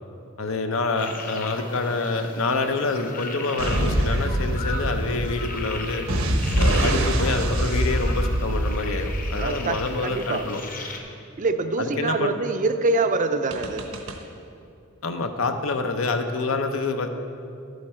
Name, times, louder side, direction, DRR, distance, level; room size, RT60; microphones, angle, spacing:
voice 1, 0.4-6.1 6.6-10.6 11.8-12.3 15.0-17.1, left 3 dB, 75° left, 6 dB, 0.8 m, -27 dB
sound 1, 1.0-11.0, left 3 dB, 45° left, 1.0 m, -37 dB
sound 2, 3.6-10.0 13.5-14.1, right 1 dB, 80° right, 1.0 m, -24 dB
voice 2, 9.4-10.4 11.4-13.8, right 3 dB, 40° right, 8 dB, 0.5 m, -25 dB
11.5 x 8.2 x 4.4 m, 2.5 s
head